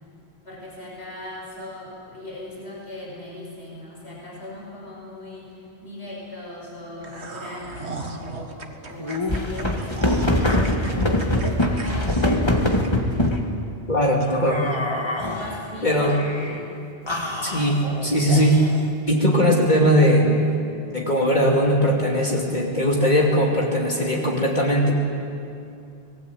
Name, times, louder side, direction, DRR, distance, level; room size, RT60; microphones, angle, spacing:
voice 1, 0.4-13.3 15.2-16.7 17.0-17.6, left 1 dB, 75° left, -4 dB, 5.8 m, -38 dB
sound 1, 7.0-13.3 13.7-13.8 14.2-14.3, right 3 dB, 85° right, 2.0 m, -37 dB
sound 2, 9.0-13.5 14.3-15.6 16.0-16.6 17.1-18.9, left 1 dB, 25° left, 1.9 m, -24 dB
voice 2, 13.9-14.6 15.8-16.1 17.4-18.6 19.1-20.5 20.9-24.9, equal, 45° left, -2 dB, 2.9 m, -19 dB
25.0 x 20.5 x 8.7 m, 2.5 s
omnidirectional pair, 1.1 m